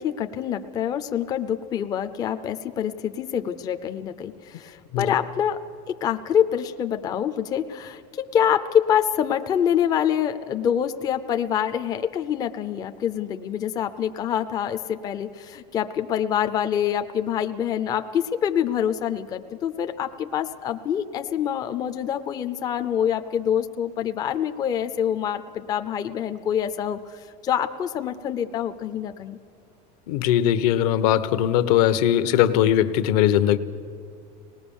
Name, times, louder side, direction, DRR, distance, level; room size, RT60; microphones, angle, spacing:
voice 1, 0.0-27.0 27.4-29.4, left 9 dB, 20° left, 8 dB, 0.5 m, -26 dB
voice 2, 30.1-33.6, left 11 dB, 60° left, 12 dB, 1.0 m, -20 dB
25.0 x 19.5 x 7.1 m, 2.4 s
cardioid pair, 180°, 21 cm